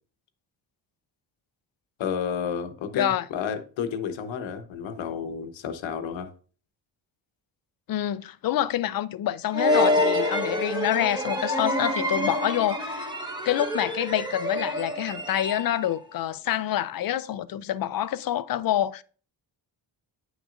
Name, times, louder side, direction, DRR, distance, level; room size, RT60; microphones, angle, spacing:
voice 1, 2.0-6.3, left 7 dB, 85° left, 1.1 m, -31 dB
voice 2, 2.9-3.2 7.9-13.1 13.4-19.0, left 12 dB, 50° left, 0.5 m, -27 dB
sound 1, 9.5-16.0, left 1 dB, 10° right, 1.1 m, -27 dB
9.1 x 6.1 x 2.5 m
cardioid pair, 115°, 44 cm